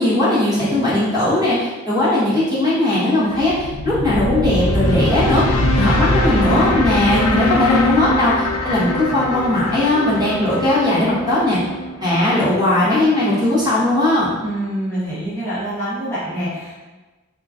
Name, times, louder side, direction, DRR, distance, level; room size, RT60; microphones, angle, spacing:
voice 1, 0.0-5.4 5.7-11.6 12.0-14.3, left 1 dB, 20° right, -10 dB, 1.1 m, -18 dB
sound 1, 3.4-12.5, left 1 dB, 85° left, 0.4 m, -21 dB
voice 2, 14.4-16.7, right 1 dB, 10° left, -11 dB, 1.0 m, -25 dB
3.6 x 2.9 x 2.4 m, 1.2 s
head